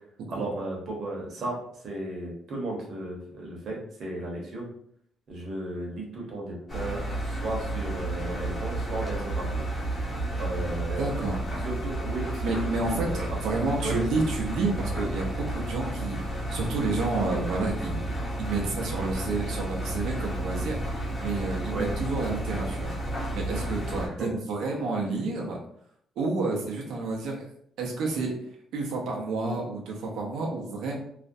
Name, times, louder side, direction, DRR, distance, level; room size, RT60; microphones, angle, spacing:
voice 1, 0.3-4.7 5.3-9.6 10.4-11.1 11.6-13.3 13.8-14.1 21.7-21.9 24.0-24.3, right 2 dB, 50° right, -2 dB, 0.8 m, -35 dB
Engine, 6.7-24.1, right 1 dB, 20° left, 0.7 m, -32 dB
voice 2, 11.0-11.4 12.4-18.0 18.4-20.8 21.2-22.9 23.3-25.6 26.2-27.5 27.8-28.3 28.7-31.0, right 3 dB, 80° right, -1 dB, 0.5 m, -30 dB
2.4 x 2.0 x 2.6 m, 0.69 s
cardioid pair, 150°, 0 cm